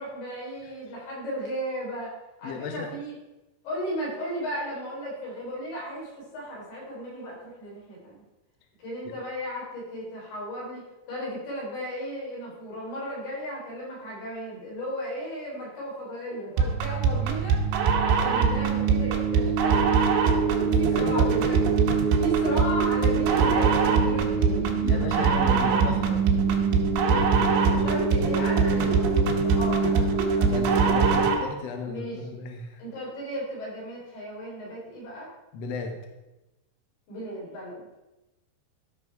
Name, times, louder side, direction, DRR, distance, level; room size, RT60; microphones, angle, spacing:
voice 1, 0.0-2.1 2.4-3.1 3.6-8.2 8.8-17.6 18.0-20.0 20.6-21.9 22.2-25.3 27.8-30.9 31.8-32.4 32.8-35.3 37.1-37.8, equal, 65° left, -4 dB, 5.7 m, -35 dB
voice 2, 2.4-2.9 20.9-21.4 24.8-26.3 27.1-27.9 30.4-32.8 35.5-36.1, left 4 dB, 85° left, 4 dB, 1.4 m, -35 dB
sound 1, 16.6-31.5, right 5 dB, 85° right, 3.4 m, -22 dB
13.0 x 6.3 x 4.7 m, 1.0 s
omnidirectional pair, 4.9 m